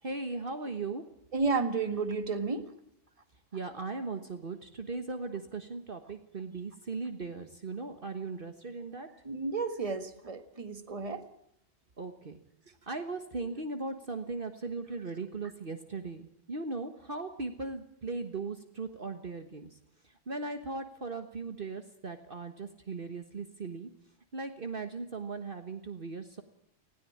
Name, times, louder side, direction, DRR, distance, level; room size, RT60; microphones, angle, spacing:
voice 1, 0.0-1.0 3.5-9.1 12.0-12.4 12.9-19.8 20.0-23.9 24.3-26.4, right 3 dB, 50° right, 7 dB, 1.6 m, -38 dB
voice 2, 1.3-2.7 9.2-11.2, right 4 dB, 30° right, 9 dB, 1.7 m, -32 dB
19.5 x 16.5 x 8.6 m, 0.75 s
omnidirectional pair, 1.2 m